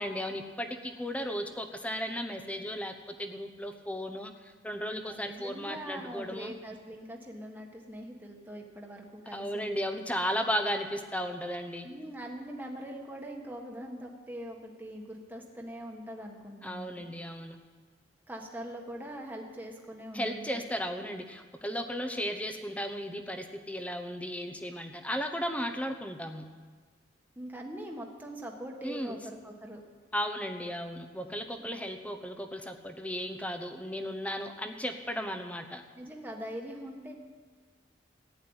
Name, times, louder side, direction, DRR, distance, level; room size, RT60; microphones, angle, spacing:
voice 1, 0.0-4.3 4.6-6.5 9.3-11.9 16.6-17.6 20.1-26.4 28.8-29.2 30.1-35.8, equal, 5° left, 7 dB, 0.9 m, -35 dB
voice 2, 4.8-9.7 11.8-17.1 18.3-20.6 27.3-29.8 31.2-31.7 35.9-37.1, right 1 dB, 10° right, 0 dB, 1.4 m, -42 dB
14.5 x 10.0 x 8.8 m, 1.5 s
head